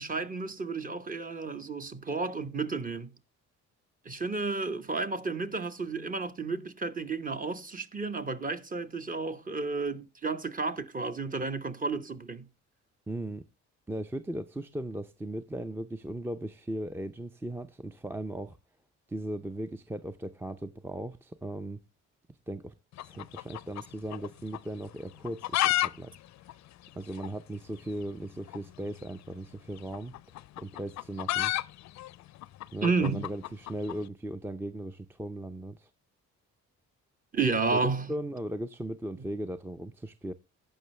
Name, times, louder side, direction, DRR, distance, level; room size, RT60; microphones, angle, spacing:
voice 1, 0.0-3.1 4.0-12.5 32.8-33.3 37.3-38.1 39.2-39.3, right 4 dB, 25° right, 1.0 m, -32 dB
voice 2, 13.1-13.4 13.9-18.6 19.1-21.8 22.5-22.7 23.0-26.1 26.5-26.6 26.9-30.1 30.6-31.5 32.7-35.9 37.7-40.3, right 1 dB, 10° right, 0.4 m, -37 dB
sound 1, 22.9-24.3 24.5-24.6 25.2-25.9 26.1-26.2 26.5-26.6 27.2-27.3 28.5-28.6 29.8-34.0, left 15 dB, 65° left, 0.5 m, -30 dB
16.0 x 5.5 x 3.1 m
cardioid pair, 90°, 30 cm